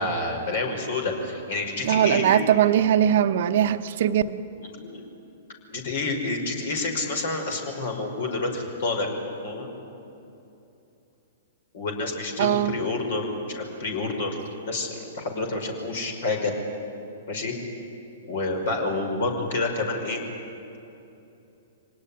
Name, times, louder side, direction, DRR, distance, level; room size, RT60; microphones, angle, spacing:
voice 1, 0.0-2.4 4.6-5.0 5.7-9.1 9.4-9.7 11.7-14.4 14.7-16.5 17.3-17.6 18.3-20.2, left 3 dB, 65° left, 3 dB, 5.5 m, -28 dB
voice 2, 1.8-4.4 12.4-12.8, right 10 dB, 60° right, 9 dB, 0.9 m, -21 dB
25.0 x 18.5 x 10.0 m, 2.8 s
hypercardioid pair, 115°, 0 cm